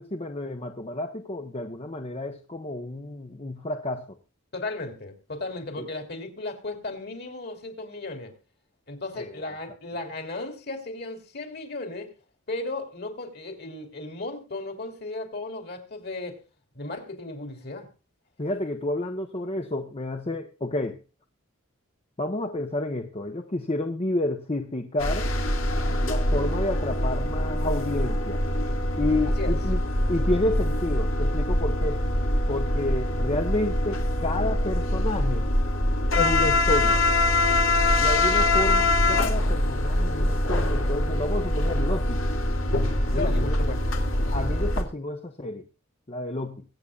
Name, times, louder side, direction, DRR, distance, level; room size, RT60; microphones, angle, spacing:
voice 1, 0.0-4.0 5.8-5.9 9.2-9.4 18.4-21.0 22.2-25.3 26.0-28.4 29.0-29.8 30.1-32.0 32.5-35.5 36.2-37.0 38.0-42.2 43.1-43.6 44.3-45.7 46.1-46.6, left 2 dB, 30° left, 1.0 m, -30 dB
voice 2, 4.5-8.3 8.9-12.1 12.5-16.4 16.7-17.9 29.3-29.6 43.1-44.0, left 2 dB, 50° left, 3.6 m, -35 dB
sound 1, 25.0-44.8, left 1 dB, 75° left, 2.9 m, -24 dB
24.0 x 8.5 x 2.4 m
head